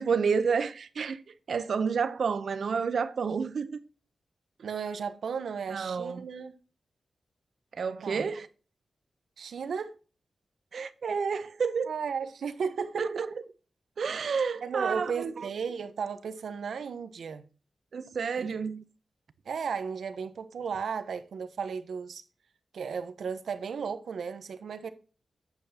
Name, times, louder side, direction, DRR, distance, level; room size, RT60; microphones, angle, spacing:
voice 1, 0.0-3.8 5.7-6.3 7.7-8.5 10.7-11.9 13.0-13.3 14.0-15.5 17.9-18.8, right 5 dB, 65° right, 0.6 m, -30 dB
voice 2, 4.6-6.5 8.0-8.3 9.4-9.9 11.9-13.1 14.6-17.4 18.4-18.5 19.4-22.2 22.7-24.9, right 6 dB, 90° right, 0.9 m, -34 dB
8.8 x 8.0 x 2.8 m
wide cardioid pair, 170°, 0 cm